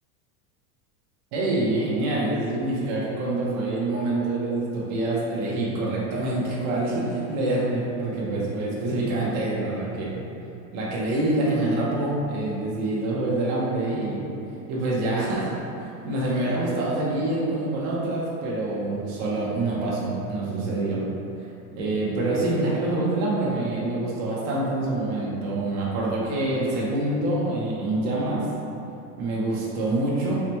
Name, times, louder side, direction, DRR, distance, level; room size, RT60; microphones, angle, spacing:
voice 1, 1.3-10.3 10.7-14.3 14.7-15.5 15.8-21.0 21.8-28.4 29.2-30.3, right 2 dB, 60° right, -6 dB, 1.1 m, -26 dB
4.8 x 2.2 x 2.9 m, 2.9 s
supercardioid pair, 160°, 47 cm